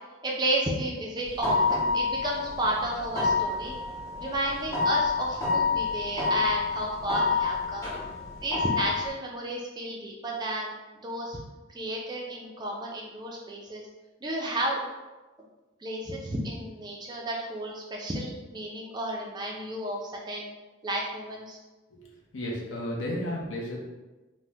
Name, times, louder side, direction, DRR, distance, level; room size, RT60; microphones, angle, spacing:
voice 1, 0.2-3.8 4.2-7.9 8.4-11.4 11.7-13.8 14.2-14.8 15.8-20.5 20.8-21.6, right 1 dB, 20° right, -2 dB, 0.3 m, -32 dB
sound 1, 1.2-9.1, left 4 dB, 15° left, 0.7 m, -28 dB
voice 2, 21.9-23.8, equal, 65° left, -4 dB, 0.6 m, -33 dB
2.8 x 2.0 x 3.3 m, 1.2 s
head